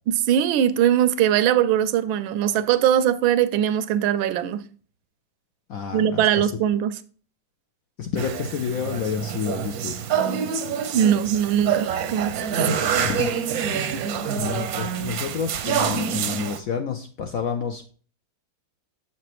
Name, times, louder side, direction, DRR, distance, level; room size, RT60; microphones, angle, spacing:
voice 1, 0.1-4.6 5.9-7.0 10.9-12.7 13.9-14.1, right 10 dB, 90° right, 1.4 m, -21 dB
voice 2, 5.7-6.5 8.0-10.0 13.0-13.8 14.4-17.8, left 7 dB, 70° left, 0.8 m, -29 dB
sound 1, 8.2-16.6, right 7 dB, 70° right, 0.9 m, -26 dB
7.3 x 5.9 x 3.0 m
omnidirectional pair, 2.1 m